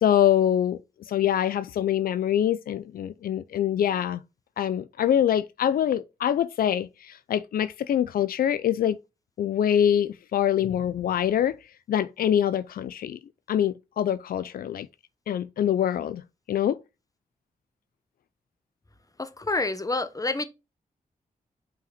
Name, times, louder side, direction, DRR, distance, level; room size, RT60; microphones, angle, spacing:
voice 1, 0.0-0.8 1.1-4.2 4.6-9.0 9.4-11.6 11.9-13.2 13.5-14.9 15.3-16.2 16.5-16.8, left 10 dB, 85° left, 0.4 m, -24 dB
voice 2, 19.2-20.5, left 2 dB, 25° left, 1.0 m, -28 dB
5.6 x 5.0 x 4.9 m
cardioid pair, 60°, 15 cm